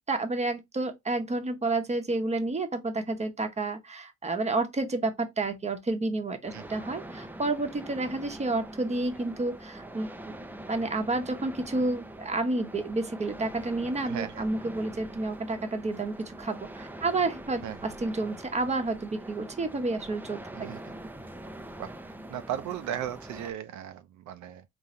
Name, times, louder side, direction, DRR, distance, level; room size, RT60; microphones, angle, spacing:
voice 1, 0.1-10.4 10.7-20.7, right 2 dB, 20° right, 0.9 m, -30 dB
sound 1, 6.5-23.5, right 1 dB, 5° right, 0.5 m, -44 dB
voice 2, 14.0-14.4 17.6-17.8 20.5-20.8 21.8-24.6, right 10 dB, 70° right, 0.5 m, -36 dB
3.8 x 2.7 x 4.2 m
cardioid pair, 90°, 30 cm